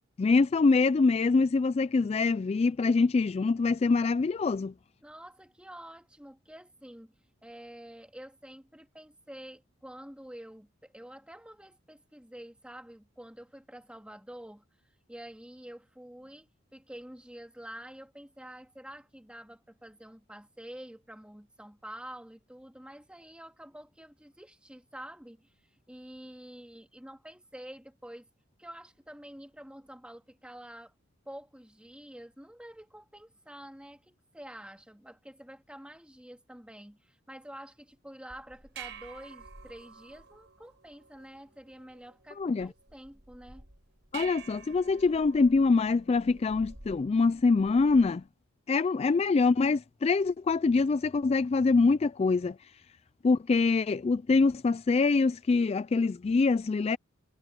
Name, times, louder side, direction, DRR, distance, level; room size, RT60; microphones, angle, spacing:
voice 1, 0.2-4.7 42.4-42.7 44.1-48.2 48.7-52.6 53.2-57.0, left 4 dB, 30° left, 0.3 m, -24 dB
voice 2, 5.0-7.1 7.4-14.6 15.1-28.3 28.6-30.9 31.3-43.7, right 1 dB, 5° right, 2.1 m, -48 dB
sound 1, 38.3-48.3, right 6 dB, 65° right, 5.7 m, -50 dB
head